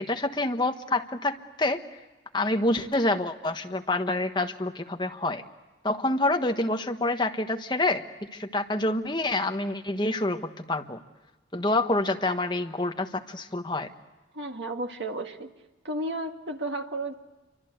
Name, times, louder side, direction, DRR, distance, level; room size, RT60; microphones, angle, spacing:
voice 1, 0.0-1.8 2.3-5.4 5.8-8.0 8.3-11.0 11.5-13.9, left 2 dB, 25° left, 5 dB, 1.3 m, -27 dB
voice 2, 14.3-15.5 15.8-17.1, right 1 dB, 70° right, 4 dB, 2.0 m, -33 dB
28.5 x 24.0 x 8.0 m, 1.1 s
head